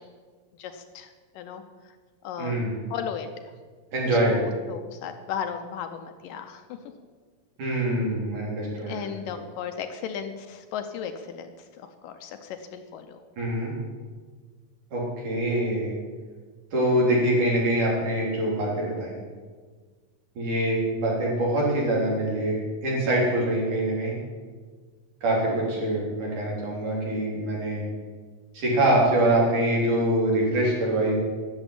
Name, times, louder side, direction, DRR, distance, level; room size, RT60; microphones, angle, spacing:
voice 1, 0.6-1.1 1.4-1.6 2.2-2.6 2.9-3.3 4.1-6.8 8.8-11.5 11.8-13.2, left 8 dB, 75° left, 7 dB, 2.3 m, -35 dB
voice 2, 2.4-2.8 3.9-4.4 7.6-9.1 13.4-13.7 14.9-15.9 16.7-19.2 20.4-24.2 25.2-27.8 28.5-31.1, right 1 dB, 60° right, -4 dB, 5.0 m, -24 dB
11.5 x 7.2 x 9.9 m, 1.5 s
omnidirectional pair, 4.2 m